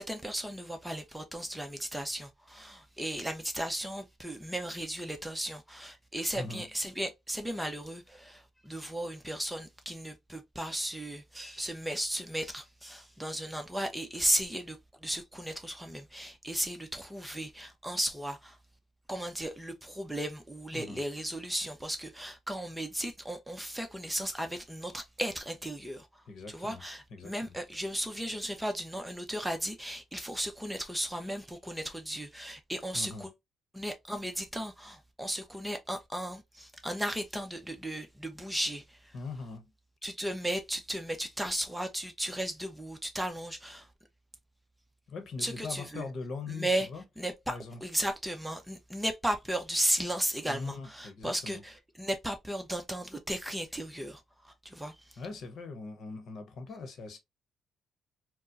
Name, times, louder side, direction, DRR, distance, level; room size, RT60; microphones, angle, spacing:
voice 1, 0.0-18.6 19.1-33.3 33.7-39.1 40.0-43.9 45.4-46.1 46.5-46.9 47.2-55.2, right 1 dB, 5° right, 0.7 m, -35 dB
voice 2, 6.3-6.7 20.7-21.0 26.3-26.8 27.1-27.6 32.9-33.3 39.1-39.7 45.1-47.0 47.5-47.8 50.5-51.6 55.2-57.2, left 4 dB, 65° left, 0.9 m, -41 dB
4.3 x 2.1 x 2.5 m
cardioid pair, 90°, 0 cm